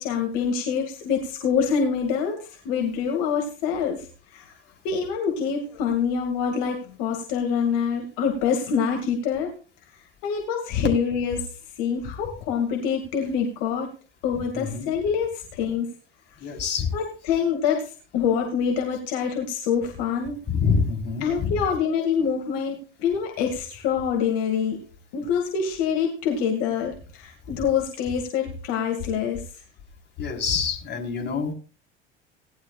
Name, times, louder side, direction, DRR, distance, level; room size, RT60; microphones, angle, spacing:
voice 1, 0.0-4.5 4.8-9.5 10.2-11.5 11.8-13.9 14.2-15.9 16.9-20.4 21.2-24.8 25.1-29.5, left 7 dB, 65° left, 3 dB, 2.0 m, -25 dB
voice 2, 14.5-14.9 16.4-16.9 20.5-21.6 27.5-27.6 30.2-31.5, left 5 dB, 35° left, 1 dB, 3.7 m, -26 dB
18.0 x 11.0 x 2.3 m, 0.38 s
hypercardioid pair, 65°, 29 cm